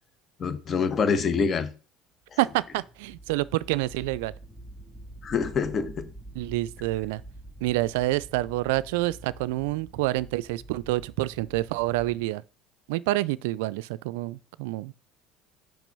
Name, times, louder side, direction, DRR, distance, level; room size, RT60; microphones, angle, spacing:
voice 1, 0.4-1.7 5.2-6.1, left 5 dB, 40° left, 1.3 m, -26 dB
sound 1, 2.3-12.3, right 1 dB, 15° left, 1.8 m, -46 dB
voice 2, 2.4-4.3 6.3-7.2 7.6-12.4 12.9-14.9, right 18 dB, 80° right, 0.3 m, -28 dB
6.0 x 5.1 x 5.3 m
hypercardioid pair, 80°, 0 cm